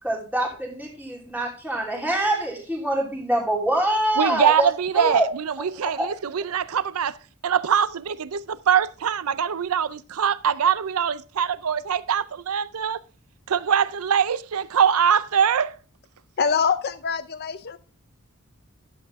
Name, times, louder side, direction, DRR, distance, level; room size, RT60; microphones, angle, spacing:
voice 1, 0.0-4.7 4.9-5.2 5.8-6.1, right 1 dB, 5° right, 3.0 m, -25 dB
voice 2, 4.2-7.2 7.4-13.0 13.5-15.7, right 8 dB, 75° right, 0.5 m, -23 dB
voice 3, 16.4-17.8, left 6 dB, 45° left, 0.5 m, -24 dB
12.0 x 7.8 x 3.5 m
head